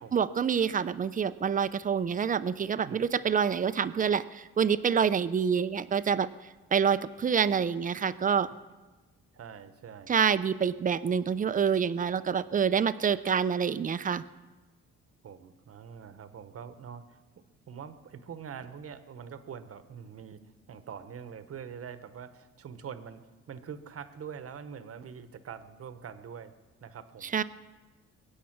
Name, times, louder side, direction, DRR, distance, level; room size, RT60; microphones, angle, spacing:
voice 1, 0.1-6.3 6.7-8.5 10.1-14.2 27.3-27.4, right 7 dB, 25° right, 13 dB, 0.6 m, -27 dB
voice 2, 9.3-10.1 15.2-17.2 17.7-20.4 20.7-26.5 26.8-27.4, right 7 dB, 50° right, 11 dB, 1.1 m, -44 dB
22.5 x 8.2 x 6.0 m, 1.2 s
cardioid pair, 90°, 30 cm